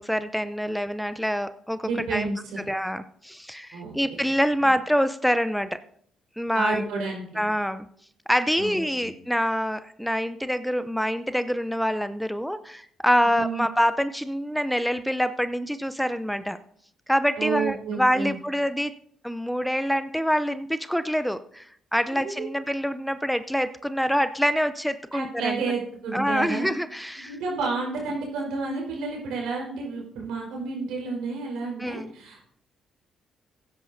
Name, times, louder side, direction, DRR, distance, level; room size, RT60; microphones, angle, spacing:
voice 1, 0.0-2.3 2.6-5.8 6.4-6.9 7.4-7.9 8.3-16.6 17.1-18.9 19.2-25.6 26.1-27.4 31.8-32.1, equal, ahead, 12 dB, 0.6 m, -26 dB
voice 2, 1.8-2.6 3.7-3.9 6.5-7.3 8.6-8.8 13.2-13.7 17.4-18.4 22.1-22.5 25.1-26.7 27.2-32.4, right 4 dB, 75° right, -1 dB, 4.6 m, -30 dB
17.0 x 9.9 x 2.7 m, 0.63 s
hypercardioid pair, 55°, 0 cm